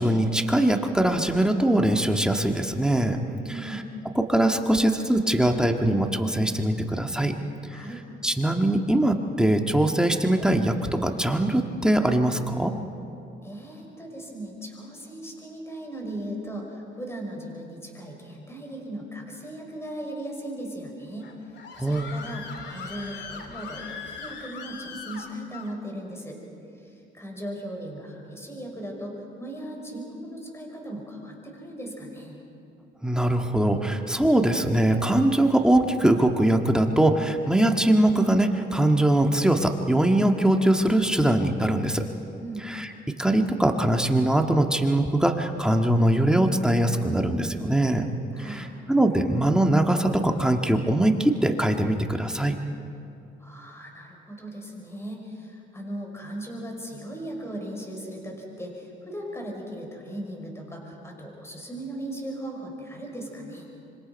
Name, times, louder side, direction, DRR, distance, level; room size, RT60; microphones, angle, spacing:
voice 1, 0.0-3.2 4.1-7.3 7.7-7.8 8.2-12.7 21.8-22.1 33.0-42.1 42.7-42.9 43.2-48.1 48.4-52.5, right 1 dB, 5° right, 3 dB, 1.7 m, -22 dB
voice 2, 3.5-3.9 7.7-8.0 13.4-21.3 21.8-26.4 26.7-32.4 42.4-42.7 48.3-48.7 53.4-63.7, right 1 dB, 15° left, 0 dB, 6.1 m, -38 dB
Screaming, 21.2-25.7, left 5 dB, 60° left, 2.5 m, -40 dB
26.0 x 25.0 x 5.4 m, 2.6 s
cardioid pair, 90°, 20 cm